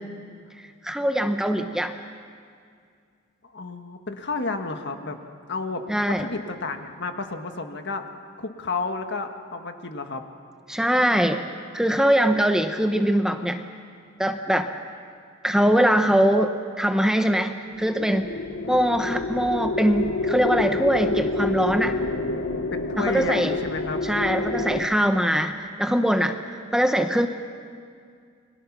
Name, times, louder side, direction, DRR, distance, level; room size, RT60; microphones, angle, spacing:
voice 1, 0.6-1.9 5.9-6.2 10.7-11.4 11.7-13.6 14.2-14.7 15.4-17.5 17.8-22.0 23.0-23.5 24.0-26.4 26.7-27.3, equal, 5° right, 6 dB, 0.9 m, -22 dB
voice 2, 3.4-5.2 5.5-5.8 6.1-8.1 8.4-10.2 22.1-24.0, left 3 dB, 55° left, 6 dB, 1.6 m, -31 dB
sound 1, 17.8-24.9, left 3 dB, 85° left, 1.2 m, -28 dB
29.5 x 22.5 x 6.1 m, 2.2 s
head